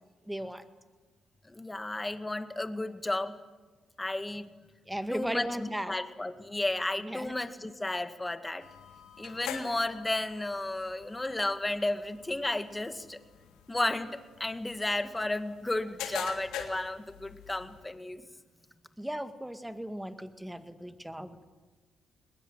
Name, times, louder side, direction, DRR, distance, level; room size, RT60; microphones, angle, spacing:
voice 1, 0.3-0.6 4.9-6.0 7.0-7.3 19.0-21.5, right 1 dB, 5° right, 9 dB, 1.9 m, -36 dB
voice 2, 1.5-3.4 4.0-4.5 5.1-8.6 9.2-13.2 13.7-18.2, left 2 dB, 15° left, 9 dB, 1.9 m, -33 dB
sound 1, 8.6-17.9, left 8 dB, 90° left, 3.1 m, -45 dB
22.0 x 20.5 x 9.1 m, 1.3 s
cardioid pair, 90°, 0 cm